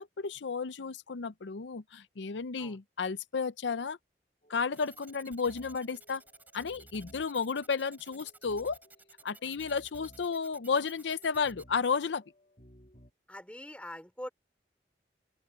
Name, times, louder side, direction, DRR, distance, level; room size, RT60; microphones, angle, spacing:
voice 1, 0.0-4.0 4.5-6.2 6.5-8.8 9.2-12.2, left 5 dB, 90° left, 0.6 m, -33 dB
sound 1, 4.4-13.1, equal, 40° left, 3.9 m, -59 dB
sound 2, 4.7-11.6, right 3 dB, 10° right, 4.7 m, -55 dB
voice 2, 13.3-14.3, left 1 dB, 5° left, 4.2 m, -43 dB
open air
head